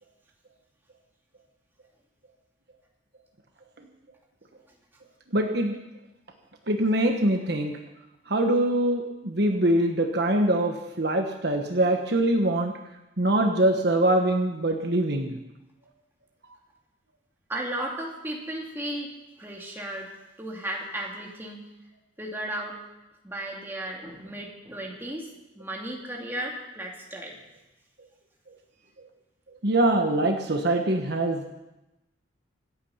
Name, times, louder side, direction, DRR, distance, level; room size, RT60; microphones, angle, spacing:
voice 1, 5.3-5.8 6.7-7.7 8.3-12.7 13.2-15.4 29.6-31.4, right 1 dB, 55° right, 4 dB, 1.2 m, -23 dB
voice 2, 17.5-19.1 19.4-20.1 20.4-21.6 22.2-22.8 23.2-25.3 25.5-27.4, right 1 dB, 10° right, -2 dB, 2.6 m, -34 dB
26.0 x 8.8 x 5.7 m, 0.99 s
head